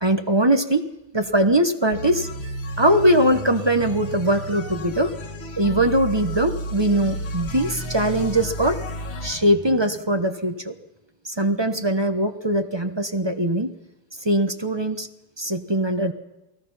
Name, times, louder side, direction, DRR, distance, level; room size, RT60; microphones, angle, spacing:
voice 1, 0.0-0.8 1.1-2.3 2.8-5.1 5.6-8.8 9.2-10.7 11.3-13.7 14.2-15.1 15.4-16.1, right 1 dB, 20° right, 7 dB, 0.7 m, -21 dB
sound 1, 1.9-9.5, equal, 85° left, 2.8 m, -32 dB
29.0 x 18.0 x 5.6 m, 0.95 s
omnidirectional pair, 2.1 m